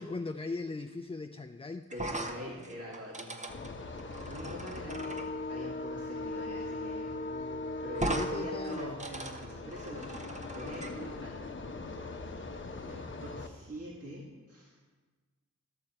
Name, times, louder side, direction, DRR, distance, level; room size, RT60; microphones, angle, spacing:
voice 1, 0.0-1.9 7.2-7.8 8.1-9.0, left 3 dB, 20° left, 7 dB, 0.4 m, -39 dB
sound 1, 1.9-5.3 6.7-6.9 7.1-7.2 7.9-8.3 8.6-10.9, right 1 dB, 20° right, 1.0 m, -39 dB
voice 2, 1.9-3.4 4.2-7.1 7.8-14.9, equal, 50° right, -4 dB, 2.1 m, -44 dB
sound 2, 3.5-13.5, left 2 dB, 40° left, 0.9 m, -40 dB
13.0 x 6.5 x 4.3 m, 1.3 s
cardioid pair, 55°, 32 cm